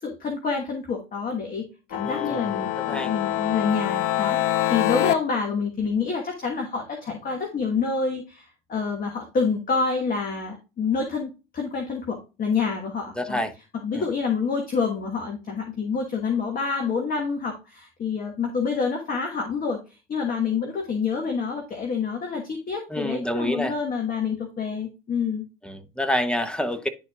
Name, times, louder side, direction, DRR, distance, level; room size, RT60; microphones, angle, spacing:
voice 1, 0.0-1.6 1.9-13.4 13.8-25.5, left 5 dB, 30° left, 1.4 m, -27 dB
sound 1, 1.9-5.1, left 14 dB, 50° left, 0.6 m, -25 dB
voice 2, 2.0-3.1 13.2-13.5 13.9-14.0 22.9-23.7 25.6-26.9, equal, 5° left, 0.8 m, -28 dB
11.0 x 4.2 x 2.4 m
hypercardioid pair, 85°, 29 cm